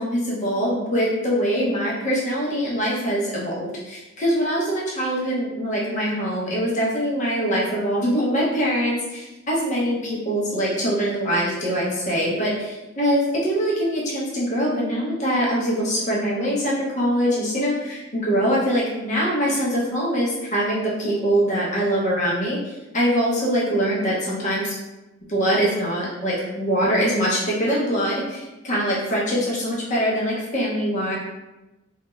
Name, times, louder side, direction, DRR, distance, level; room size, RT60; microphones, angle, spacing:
voice 1, 0.0-24.8 25.3-31.2, equal, 35° left, -5 dB, 0.6 m, -23 dB
2.2 x 2.1 x 2.9 m, 1.0 s
head